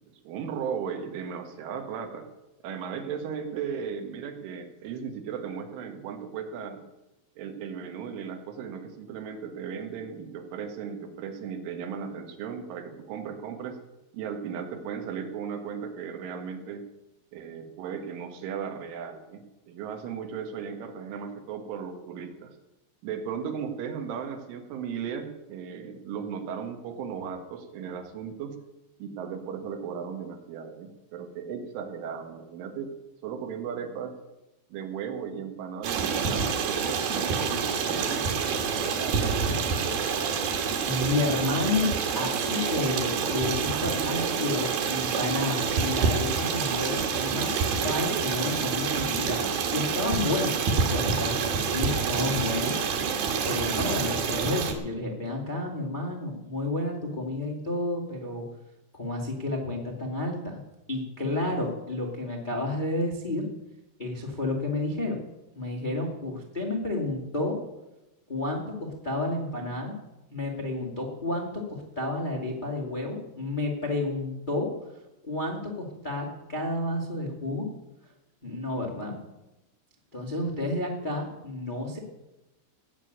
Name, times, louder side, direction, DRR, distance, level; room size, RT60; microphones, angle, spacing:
voice 1, 0.1-2.3 2.6-6.8 7.4-13.8 14.1-16.9 17.3-22.5 23.0-28.6 29.0-33.0 33.2-34.2 34.7-39.5, right 7 dB, 85° right, 6 dB, 4.1 m, -36 dB
Stream, 35.8-54.7, right 5 dB, 60° right, 3.2 m, -27 dB
voice 2, 40.8-47.5 47.8-52.7 53.4-58.4 58.9-60.6 60.9-63.4 64.0-65.2 65.5-67.6 68.3-69.9 70.3-74.7 75.2-77.7 78.4-79.2 80.1-82.0, left 2 dB, 75° left, -1 dB, 0.4 m, -31 dB
18.0 x 6.8 x 9.3 m, 0.98 s
omnidirectional pair, 5.4 m